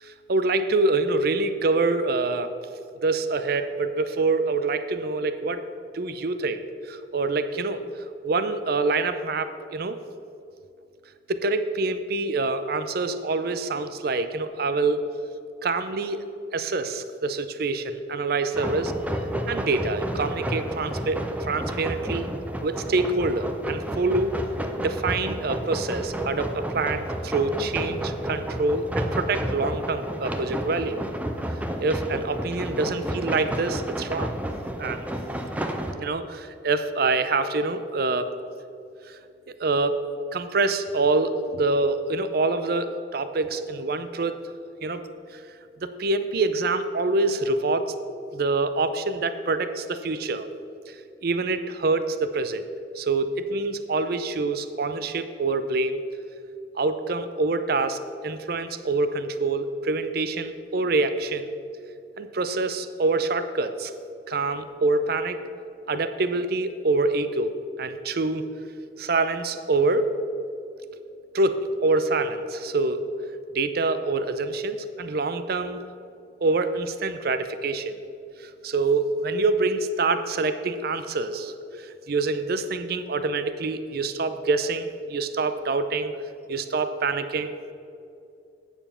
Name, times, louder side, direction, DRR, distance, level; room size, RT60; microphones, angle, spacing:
voice 1, 0.0-2.5 3.0-5.6 5.9-7.8 8.2-10.0 11.3-15.0 15.6-16.2 16.5-18.9 19.5-22.3 22.6-24.3 24.8-31.0 31.8-34.3 34.8-35.1 36.0-38.4 39.1-39.2 39.5-40.0 40.3-44.4 44.8-45.0 45.3-45.4 45.8-47.9 48.3-50.5 50.9-51.0 51.2-52.6 52.9-56.0 56.7-61.5 62.2-63.9 64.3-65.4 65.9-67.5 67.8-68.5 69.0-70.1 71.3-73.0 73.5-75.8 76.4-78.0 78.4-86.1 86.5-87.7, right 3 dB, 55° right, 11 dB, 0.5 m, -26 dB
sound 1, 18.5-35.9, equal, 10° right, 0.5 m, -31 dB
9.0 x 7.0 x 5.6 m, 2.5 s
head